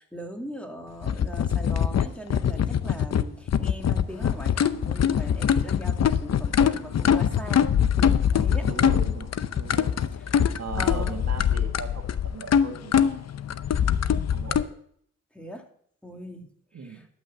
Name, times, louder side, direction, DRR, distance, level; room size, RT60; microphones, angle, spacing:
voice 1, 0.0-7.7 8.0-8.7 9.8-9.9 10.3-11.2 14.1-14.5 15.3-15.6 16.0-17.1, equal, 5° left, 2 dB, 2.5 m, -40 dB
sound 1, 1.0-14.6, left 8 dB, 60° left, 0.7 m, -23 dB
voice 2, 8.6-10.0 10.6-13.3 14.3-14.7 16.7-17.1, right 5 dB, 60° right, 4 dB, 1.8 m, -38 dB
12.0 x 6.3 x 7.2 m, 0.64 s
supercardioid pair, 45°, 30 cm